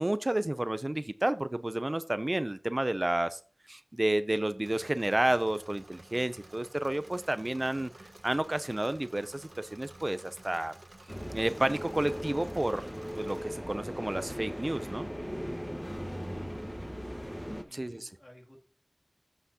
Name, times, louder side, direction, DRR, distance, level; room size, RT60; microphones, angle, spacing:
voice 1, 0.0-3.4 3.7-7.9 8.2-10.7 11.3-12.9 13.2-15.1 17.7-18.1, right 1 dB, 45° right, 13 dB, 0.5 m, -30 dB
Engine / Mechanisms, 4.6-13.4, right 2 dB, 75° right, 1.2 m, -52 dB
sound 1, 11.1-17.6, equal, 5° left, 1.3 m, -38 dB
voice 2, 15.6-15.9 17.1-18.6, equal, 45° left, -1 dB, 2.5 m, -57 dB
14.0 x 5.7 x 2.8 m, 0.41 s
wide cardioid pair, 45°, 0 cm